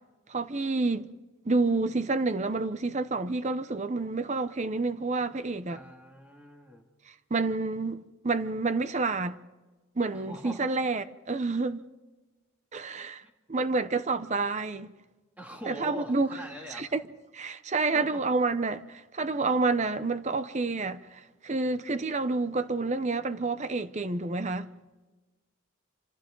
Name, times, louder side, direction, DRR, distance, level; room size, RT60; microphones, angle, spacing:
voice 1, 0.3-1.1 1.4-5.8 7.3-9.4 10.0-11.8 12.7-13.2 13.5-14.9 15.7-16.3 16.7-17.0 17.3-24.7, right 3 dB, 35° right, 0.7 m, -29 dB
voice 2, 5.7-6.9 10.1-10.7 13.2-13.3 15.4-16.9 17.9-18.2, equal, 5° right, 2.4 m, -43 dB
27.0 x 27.0 x 3.9 m
head